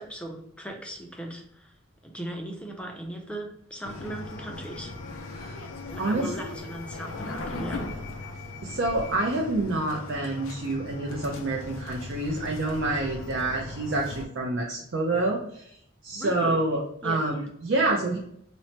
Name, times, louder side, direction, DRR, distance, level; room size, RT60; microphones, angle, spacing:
voice 1, 0.0-1.7 2.0-5.2 5.9-8.0 16.1-16.7 17.0-17.3, right 1 dB, 5° left, 2 dB, 0.4 m, -38 dB
sound 1, 3.8-14.3, left 2 dB, 85° left, 0.4 m, -38 dB
voice 2, 6.0-6.5 8.6-15.8 16.0-18.2, right 2 dB, 60° right, -1 dB, 0.5 m, -28 dB
3.1 x 2.0 x 2.8 m, 0.70 s
head